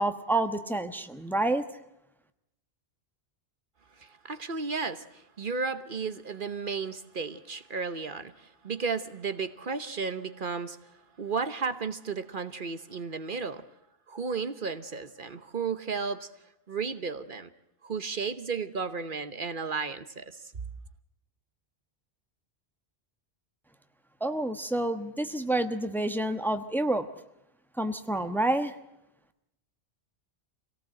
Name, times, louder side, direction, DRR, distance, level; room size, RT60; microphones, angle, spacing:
voice 1, 0.0-1.6 24.2-27.1 27.8-28.7, right 1 dB, ahead, 8 dB, 1.1 m, -28 dB
voice 2, 4.0-10.9 11.2-13.6 14.1-16.3 16.7-17.5 17.8-20.4, right 5 dB, 55° right, 11 dB, 1.2 m, -34 dB
26.0 x 18.0 x 7.6 m, 0.88 s
omnidirectional pair, 1.0 m